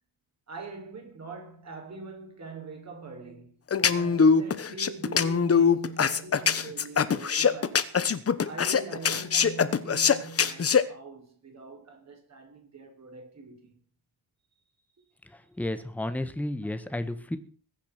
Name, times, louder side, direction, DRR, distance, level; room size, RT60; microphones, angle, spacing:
voice 1, 0.5-3.6 3.9-7.9 8.4-13.8, right 4 dB, 40° right, 6.1 m, -43 dB
sound 1, 3.7-10.8, left 6 dB, 35° left, 1.1 m, -22 dB
voice 2, 15.6-17.4, left 1 dB, 5° left, 1.5 m, -32 dB
21.5 x 10.0 x 6.0 m
wide cardioid pair, 175°, 41 cm